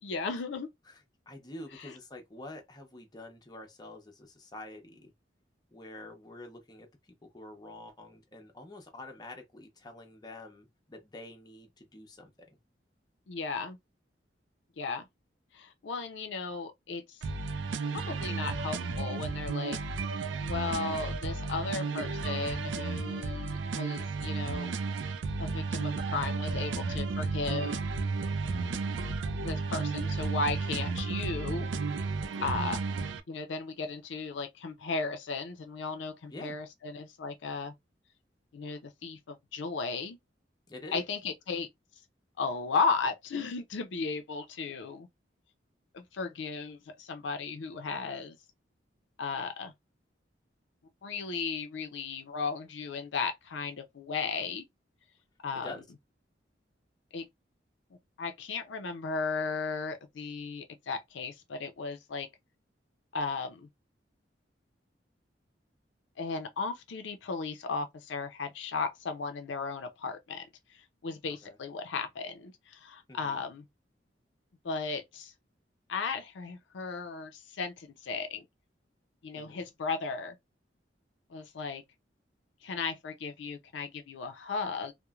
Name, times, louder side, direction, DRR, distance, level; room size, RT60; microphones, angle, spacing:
voice 1, 0.0-0.7 1.7-2.0 13.3-13.8 14.8-15.0 15.5-17.2 18.1-19.8 20.4-24.7 25.4-27.8 29.4-31.7 32.4-32.8 33.3-37.7 38.5-40.2 40.9-41.7 42.4-45.1 45.9-48.4 49.2-49.7 51.0-54.7 55.4-55.7 57.1-57.3 58.2-62.3 63.1-63.7 66.2-73.6 74.6-75.3 75.9-78.4 79.2-80.4 81.3-81.8 82.6-84.9, left 4 dB, 80° left, 0.5 m, -35 dB
voice 2, 1.3-5.1 5.7-6.9 7.2-12.3 28.4-29.1 32.2-32.6 36.3-36.6 40.7-41.0 55.5-55.8 71.4-71.6 73.1-73.4 79.3-79.7, left 2 dB, 20° left, 0.6 m, -47 dB
sound 1, 17.2-33.2, right 4 dB, 85° right, 0.4 m, -33 dB
3.0 x 2.1 x 2.3 m
head